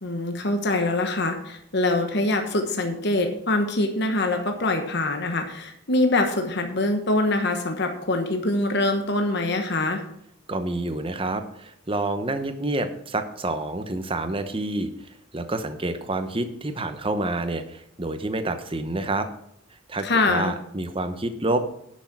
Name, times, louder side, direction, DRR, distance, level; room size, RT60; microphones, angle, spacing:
voice 1, 0.0-10.0 20.0-20.5, left 2 dB, 50° left, 5 dB, 1.1 m, -24 dB
voice 2, 10.5-19.3 19.9-21.6, right 2 dB, 25° right, 9 dB, 0.8 m, -28 dB
10.5 x 6.3 x 5.9 m, 0.75 s
head